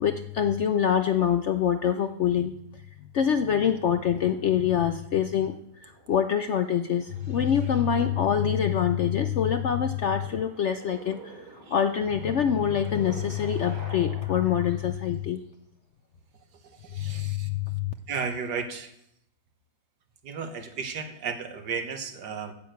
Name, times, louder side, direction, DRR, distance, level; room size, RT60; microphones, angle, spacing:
voice 1, 0.0-2.5 3.0-15.4 17.0-17.9, left 8 dB, 70° left, 8 dB, 0.7 m, -25 dB
sound 1, 3.7-5.2 5.5-8.9 9.5-15.4 16.7-16.8, right 2 dB, 70° right, 3.2 m, -48 dB
voice 2, 16.9-17.5 18.1-18.9 20.2-22.5, right 5 dB, 85° right, 7 dB, 1.8 m, -33 dB
9.4 x 8.4 x 7.9 m, 0.78 s
omnidirectional pair, 1.8 m